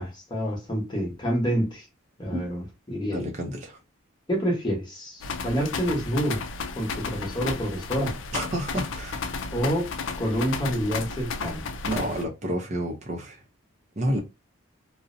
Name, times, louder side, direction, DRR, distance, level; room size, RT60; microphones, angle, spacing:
voice 1, 0.0-1.8 2.2-3.3 4.3-6.4 6.7-8.2 9.5-9.9 10.2-11.7, equal, 20° left, 0.9 m, -28 dB
voice 2, 3.1-3.8 8.3-9.3 11.8-13.4 14.0-14.2, right 1 dB, 35° right, 0.5 m, -30 dB
sound 1, 5.2-12.2, left 4 dB, 60° left, 0.4 m, -33 dB
2.5 x 2.0 x 2.5 m
head